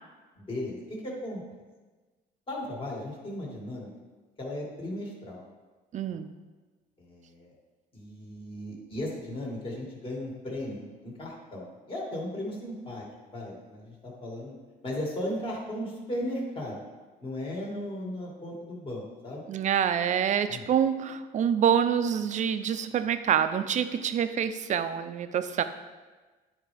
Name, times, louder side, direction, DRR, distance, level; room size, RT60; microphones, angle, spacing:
voice 1, 0.4-1.4 2.5-3.9 4.4-5.4 6.1-6.2 7.0-7.5 7.9-13.0 13.3-14.5 14.8-16.8 17.2-19.4 20.5-20.7, left 1 dB, 30° left, -3 dB, 2.2 m, -36 dB
voice 2, 5.9-6.3 19.5-25.6, right 8 dB, 45° right, 11 dB, 0.5 m, -26 dB
9.9 x 4.6 x 3.4 m, 1.3 s
cardioid pair, 110°, 17 cm